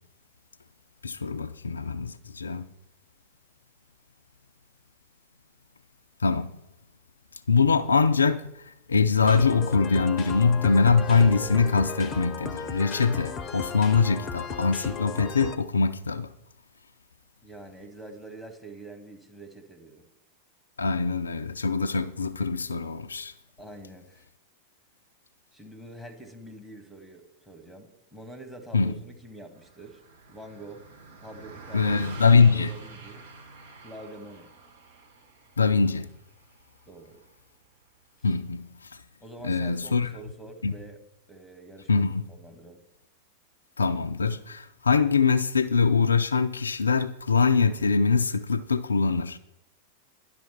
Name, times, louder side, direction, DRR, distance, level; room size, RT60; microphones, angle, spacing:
voice 1, 1.0-2.7 6.2-6.5 7.5-8.4 8.9-16.3 20.8-23.3 28.7-28.9 31.7-32.7 35.6-36.1 38.2-38.7 39.4-40.1 40.6-40.7 41.9-42.2 43.8-49.4, left 5 dB, 75° left, 0.3 m, -23 dB
sound 1, 9.2-15.6, left 6 dB, 30° left, 0.6 m, -36 dB
voice 2, 17.4-20.0 23.6-24.3 25.5-30.0 30.3-30.9 31.2-33.3 33.8-34.5 36.9-37.2 38.2-38.3 39.2-41.0 41.3-42.9, right 2 dB, ahead, 1.3 m, -46 dB
Car passing by, 29.5-39.1, right 4 dB, 60° right, 1.1 m, -47 dB
10.5 x 6.1 x 4.3 m
figure-of-eight pair, 90°, 0 cm